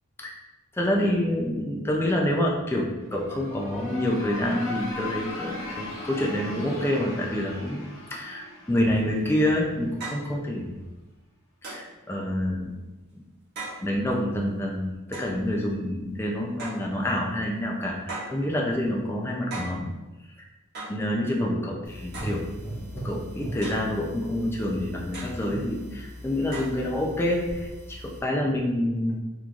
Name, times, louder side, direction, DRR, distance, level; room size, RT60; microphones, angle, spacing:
voice 1, 0.7-7.8 8.1-10.7 11.6-12.7 13.1-13.2 13.8-19.9 20.9-21.8 22.0-22.5 22.7-29.2, left 1 dB, 10° left, -2 dB, 0.4 m, -27 dB
sound 1, 3.0-9.8, left 2 dB, 70° left, 1.0 m, -38 dB
sound 2, 9.1-9.2 10.0-10.3 11.6-11.9 13.6-13.8 15.1-15.4 16.6-16.9 18.1-18.4 19.5-19.8 20.7-21.0 22.1-22.4 23.6-23.9 25.1-25.4 26.5-26.8, right 2 dB, 50° right, 1.4 m, -37 dB
sound 3, 21.8-28.2, equal, 45° left, 1.3 m, -39 dB
3.7 x 3.0 x 2.4 m, 1.1 s
head